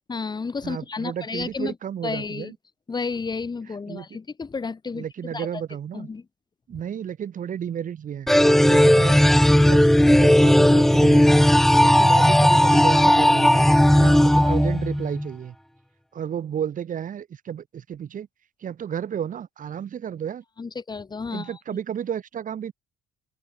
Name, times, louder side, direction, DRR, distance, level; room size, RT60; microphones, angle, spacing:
voice 1, 0.1-1.8 2.0-2.5 2.9-5.0 5.3-5.5 5.9-6.2 20.6-21.6, left 4 dB, 20° left, 3.7 m, -31 dB
voice 2, 0.6-2.5 3.9-4.0 4.9-6.1 6.7-8.3 8.6-9.2 9.5-11.5 11.8-13.7 13.9-15.5 16.1-18.3 18.6-20.4 21.3-22.7, right 9 dB, 45° right, 7.0 m, -32 dB
sound 1, 8.3-15.3, equal, ahead, 0.7 m, -16 dB
open air
cardioid pair, 150°, 19 cm